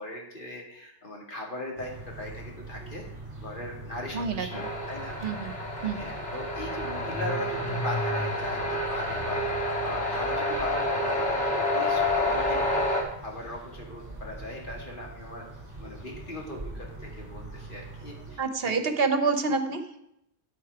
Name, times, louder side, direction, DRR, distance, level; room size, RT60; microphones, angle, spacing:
voice 1, 0.0-3.0 3.4-5.2 6.0-15.4 15.8-18.8, left 1 dB, 50° left, -1 dB, 2.4 m, -39 dB
sound 1, 1.8-18.4, right 2 dB, 25° right, 2.6 m, -43 dB
voice 2, 4.1-4.7 5.2-5.5 5.8-6.1 18.4-19.8, right 4 dB, 60° right, 8 dB, 1.1 m, -27 dB
sound 2, 4.5-13.0, left 1 dB, 90° left, 2.1 m, -29 dB
Car / Engine starting, 5.2-5.3 5.6-10.8, left 2 dB, 20° left, 0.8 m, -39 dB
10.5 x 8.5 x 4.7 m, 0.79 s
omnidirectional pair, 1.1 m